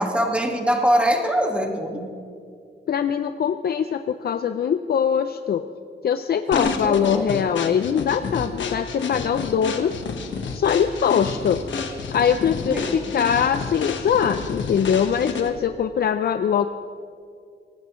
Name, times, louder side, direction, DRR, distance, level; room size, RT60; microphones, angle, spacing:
voice 1, 0.0-2.0 6.5-7.3 12.6-13.1, equal, 5° right, 2 dB, 1.7 m, -23 dB
voice 2, 2.9-5.6 6.0-9.9 10.5-11.6 12.1-16.7, left 8 dB, 55° left, 9 dB, 0.5 m, -22 dB
sound 1, 6.5-15.7, left 5 dB, 75° left, 1.4 m, -30 dB
24.0 x 18.5 x 3.1 m, 2.4 s
wide cardioid pair, 135°, 19 cm